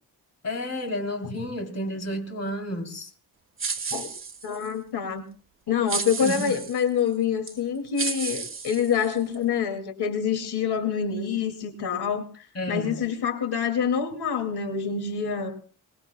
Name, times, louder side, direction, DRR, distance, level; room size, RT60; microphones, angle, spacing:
voice 1, 0.4-3.1 6.2-6.5 12.5-13.0, equal, 45° left, 3.2 m, -31 dB
sound 1, 3.6-4.7 5.9-6.8 7.5-7.6 8.0-9.4, right 5 dB, 35° right, 1.7 m, -32 dB
voice 2, 4.4-5.2 5.7-15.6, left 7 dB, 85° left, 2.4 m, -26 dB
25.0 x 20.0 x 2.3 m
wide cardioid pair, 140°, 38 cm